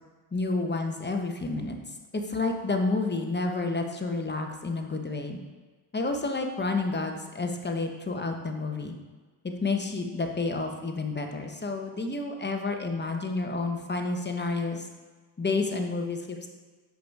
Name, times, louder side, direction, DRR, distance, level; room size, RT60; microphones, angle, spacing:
voice 1, 0.3-1.8 2.3-5.4 5.9-9.0 9.6-14.8 15.4-16.5, left 3 dB, 20° left, 4 dB, 1.1 m, -30 dB
7.7 x 5.2 x 4.7 m, 1.4 s
cardioid pair, 70°, 50 cm